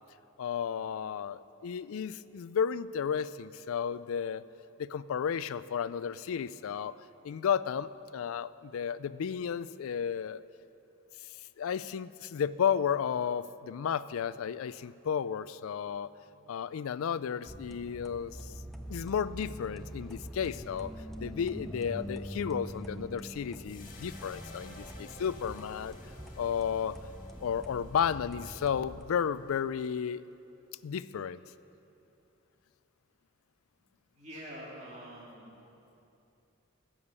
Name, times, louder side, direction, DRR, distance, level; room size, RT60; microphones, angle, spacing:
voice 1, 0.4-4.5 4.8-6.9 7.2-10.4 11.6-16.1 16.5-18.5 18.9-20.9 21.2-25.9 26.4-27.0 27.4-30.2 30.8-31.4, left 7 dB, 80° left, 17 dB, 0.4 m, -33 dB
sound 1, 14.8-27.5, left 5 dB, 60° right, 2.9 m, -67 dB
sound 2, 17.5-29.0, equal, ahead, 0.4 m, -44 dB
sound 3, 23.6-30.0, left 2 dB, 40° left, 1.7 m, -54 dB
voice 2, 33.8-35.6, equal, 30° right, -5 dB, 2.1 m, -46 dB
14.5 x 7.3 x 8.2 m, 2.8 s
head